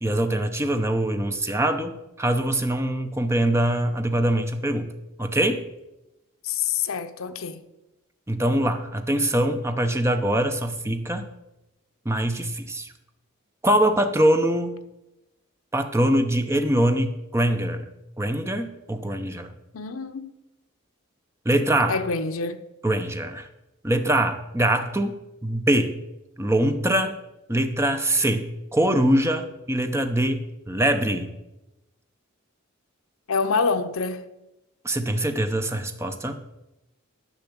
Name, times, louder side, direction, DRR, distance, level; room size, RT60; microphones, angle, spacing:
voice 1, 0.0-4.9 5.2-5.6 8.3-11.3 12.0-12.9 13.6-14.8 15.7-17.9 18.2-19.5 21.4-22.0 22.8-23.5 23.8-25.1 25.4-25.9 26.4-27.1 27.5-31.3 34.8-36.4, right 1 dB, 10° right, 0.7 m, -23 dB
voice 2, 6.4-7.6 19.7-20.3 21.9-22.6 33.3-34.2, left 5 dB, 70° left, 0.8 m, -26 dB
10.5 x 5.9 x 8.0 m
head